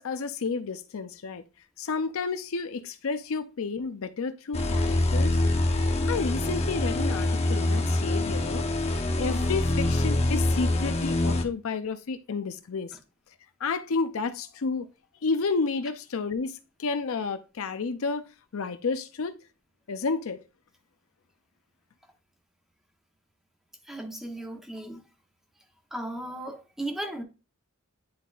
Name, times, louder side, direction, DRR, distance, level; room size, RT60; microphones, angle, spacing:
voice 1, 0.0-1.4 1.8-5.4 5.8-12.9 13.6-14.9 15.2-18.2 18.5-19.4 19.9-20.4, left 4 dB, 65° left, 0.5 m, -31 dB
sound 1, 4.5-11.4, left 2 dB, 30° left, 0.8 m, -25 dB
voice 2, 23.9-25.0 25.9-27.2, right 1 dB, ahead, 1.0 m, -36 dB
10.0 x 3.9 x 2.4 m
head